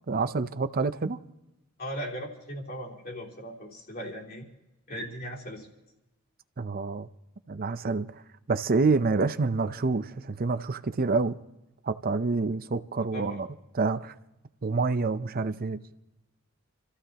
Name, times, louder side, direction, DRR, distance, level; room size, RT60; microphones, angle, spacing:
voice 1, 0.1-1.2 6.6-7.1 7.5-8.2 8.5-11.4 11.8-13.5 13.7-14.1 14.6-15.8, right 3 dB, 45° right, 0.6 m, -27 dB
voice 2, 1.8-4.4 4.9-5.7 13.1-13.4, equal, 45° left, 3.5 m, -38 dB
29.5 x 14.5 x 2.9 m
head